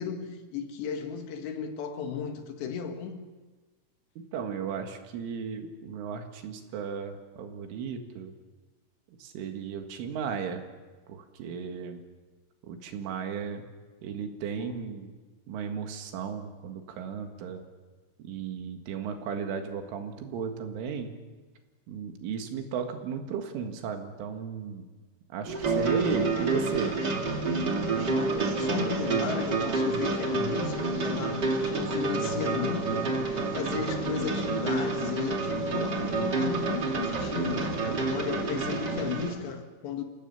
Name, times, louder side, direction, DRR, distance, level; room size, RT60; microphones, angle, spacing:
voice 1, 0.0-3.3 14.6-14.8 28.1-40.0, left 6 dB, 70° left, 3.8 m, -35 dB
voice 2, 4.3-8.3 9.2-10.6 11.1-12.0 12.6-13.6 14.0-15.1 15.5-17.6 18.2-21.1 21.9-24.9 25.3-26.9, right 6 dB, 90° right, 4.4 m, -35 dB
sound 1, 25.5-39.3, right 3 dB, 40° right, 1.5 m, -29 dB
28.5 x 17.0 x 7.2 m
omnidirectional pair, 5.5 m